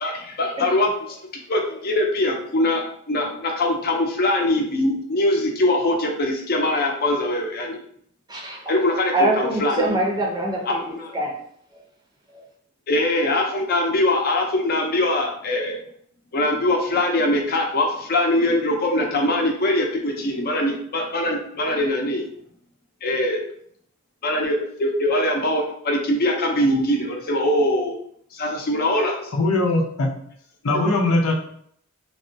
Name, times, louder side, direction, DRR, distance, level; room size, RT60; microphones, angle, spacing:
voice 1, 0.0-0.9 1.5-7.8 8.7-9.9 10.9-11.1 12.9-15.8 16.3-22.3 23.0-23.4 24.2-28.0 28.3-29.3 30.7-30.8, left 1 dB, 45° left, 2 dB, 0.6 m, -22 dB
voice 2, 8.3-8.6 9.1-10.8 11.1-11.3, right 1 dB, 20° right, -2 dB, 0.6 m, -23 dB
voice 3, 29.3-30.1 30.6-31.3, left 2 dB, 85° left, 0 dB, 0.6 m, -20 dB
3.4 x 2.1 x 2.6 m, 0.65 s
head